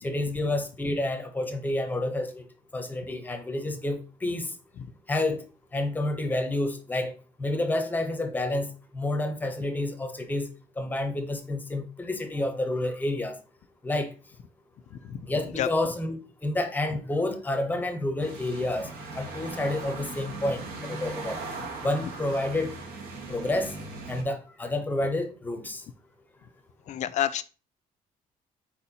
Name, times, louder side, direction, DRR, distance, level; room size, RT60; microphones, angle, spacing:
voice 1, 0.0-2.5 2.7-4.5 5.1-5.4 5.7-7.1 7.4-10.5 10.8-13.4 13.8-14.1 15.3-21.4 21.8-22.8 23.3-23.7 24.1-25.8, left 1 dB, 10° left, 0.7 m, -29 dB
voice 2, 14.9-15.3 15.6-15.7 26.9-27.4, left 11 dB, 50° left, 0.4 m, -29 dB
sound 1, 18.2-24.2, right 3 dB, 80° right, 1.1 m, -39 dB
4.3 x 4.1 x 2.7 m
cardioid pair, 135°, 15 cm